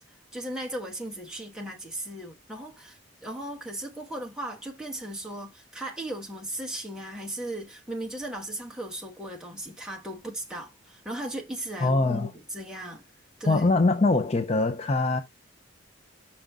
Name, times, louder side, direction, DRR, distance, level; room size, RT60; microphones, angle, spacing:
voice 1, 0.3-13.0 13.4-13.7, right 1 dB, 5° right, 1.2 m, -37 dB
voice 2, 11.8-12.3 13.5-15.2, left 3 dB, 30° left, 0.5 m, -23 dB
5.9 x 5.2 x 3.6 m
head